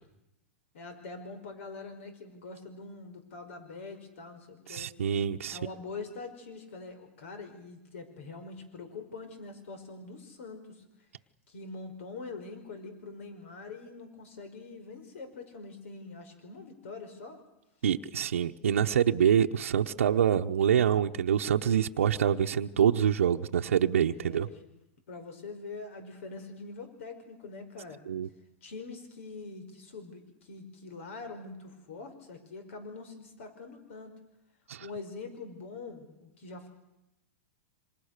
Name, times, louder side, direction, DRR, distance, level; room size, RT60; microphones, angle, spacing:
voice 1, 0.7-4.9 5.5-10.8 11.5-17.4 24.2-24.6 25.1-28.0 28.6-34.1 34.8-36.7, left 3 dB, 70° left, 8 dB, 5.2 m, -44 dB
voice 2, 4.7-5.6 17.8-24.5 28.1-28.3 34.7-34.9, right 9 dB, 90° right, 3 dB, 1.0 m, -26 dB
27.5 x 26.0 x 6.7 m, 0.91 s
hypercardioid pair, 125°, 7 cm